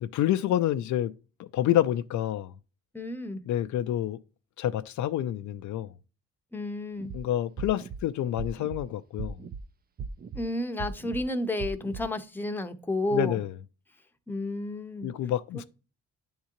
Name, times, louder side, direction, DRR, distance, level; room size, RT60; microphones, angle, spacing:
voice 1, 0.0-1.1 1.4-2.5 3.5-4.2 4.6-5.9 7.1-9.4 13.1-13.5 15.0-15.6, left 12 dB, 70° left, 0.5 m, -28 dB
voice 2, 2.9-3.4 6.5-7.1 10.3-13.4 14.3-15.1, left 1 dB, 5° left, 0.7 m, -31 dB
sound 1, 7.0-7.2 7.6-8.0 8.4-8.8 9.2-9.6 10.0-10.4 10.8-11.2 11.6-12.0, right 6 dB, 30° right, 0.5 m, -38 dB
9.5 x 3.7 x 2.9 m
cardioid pair, 90°, 30 cm